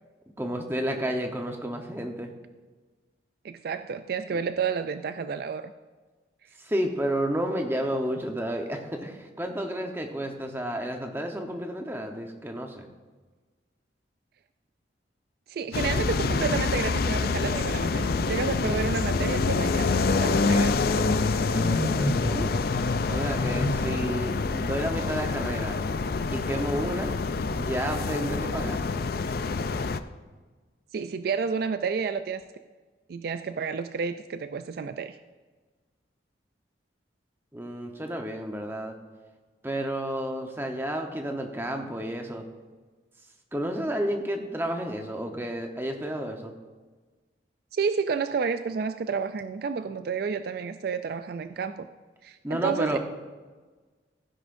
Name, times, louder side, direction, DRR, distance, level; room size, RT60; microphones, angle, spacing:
voice 1, 0.4-2.3 4.3-4.4 6.6-12.9 21.4-22.5 23.1-25.8 26.3-27.1 27.5-28.8 37.5-38.9 39.6-42.4 43.5-46.5 52.4-53.0, right 1 dB, 10° right, 3 dB, 0.9 m, -31 dB
voice 2, 3.4-5.7 15.5-20.7 30.9-32.4 33.1-35.2 47.7-51.9 52.2-53.0, right 5 dB, 55° right, 10 dB, 0.3 m, -30 dB
sound 1, 15.7-30.0, left 4 dB, 50° left, 0.4 m, -26 dB
sound 2, 21.6-22.7 23.0-24.0, equal, 75° right, 3.3 m, -32 dB
15.5 x 10.0 x 2.6 m, 1.4 s
head